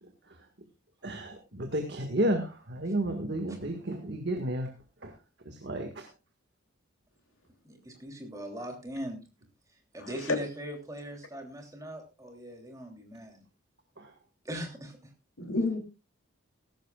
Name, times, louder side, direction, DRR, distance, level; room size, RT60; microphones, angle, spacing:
voice 1, 1.0-4.7 5.0-5.1 5.5-6.1 14.0-14.1, right 1 dB, 55° right, 4 dB, 1.8 m, -32 dB
voice 2, 7.6-9.3 9.9-13.4 14.4-15.1, equal, 15° right, 2 dB, 3.1 m, -40 dB
voice 3, 10.0-10.4 15.4-15.8, left 3 dB, 75° left, 4 dB, 3.0 m, -30 dB
17.0 x 14.0 x 2.4 m, 0.30 s
head